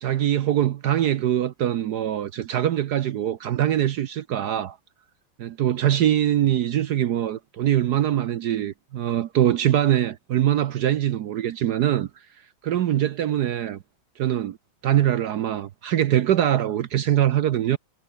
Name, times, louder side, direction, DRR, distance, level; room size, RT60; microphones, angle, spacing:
voice 1, 0.0-4.8 5.4-12.1 12.6-13.8 14.2-14.6 14.8-17.8, right 11 dB, 65° right, 1.1 m, -23 dB
omnidirectional pair, 2.3 m